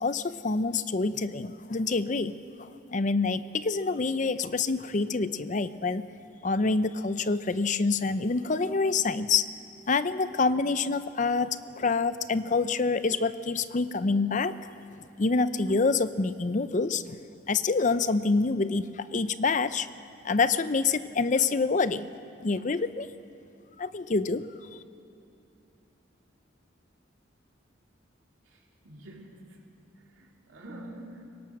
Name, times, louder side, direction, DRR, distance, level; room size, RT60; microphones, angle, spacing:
voice 1, 0.0-6.1 6.4-9.5 9.9-14.7 15.2-17.2 17.5-19.9 20.2-22.1 22.4-23.1 23.8-24.8, left 4 dB, 40° left, 13 dB, 0.5 m, -27 dB
voice 2, 28.4-29.7 30.0-31.2, right 1 dB, 90° right, -1 dB, 3.3 m, -47 dB
23.0 x 20.0 x 6.0 m, 2.7 s
head